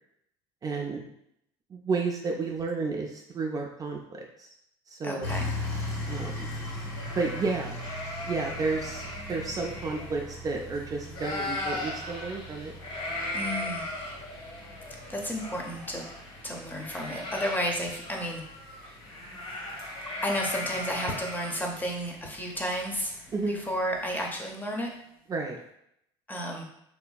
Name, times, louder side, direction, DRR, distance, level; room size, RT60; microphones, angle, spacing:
voice 1, 0.6-1.1 1.7-4.5 4.9-5.3 6.1-6.5 7.2-7.8 8.3-12.7 23.3-23.6 25.3-25.6, right 4 dB, 30° right, 0 dB, 0.4 m, -31 dB
voice 2, 5.0-5.5 13.3-13.9 15.1-16.1 16.4-18.4 18.8-18.9 20.2-24.9 26.3-26.6, equal, 15° left, 0 dB, 0.6 m, -32 dB
sound 1, 5.2-24.4, left 1 dB, 80° left, 1.3 m, -41 dB
sound 2, 6.0-10.8 11.0-24.0, left 1 dB, 45° left, 1.0 m, -38 dB
2.8 x 2.5 x 2.3 m, 0.75 s
supercardioid pair, 85°, 13 cm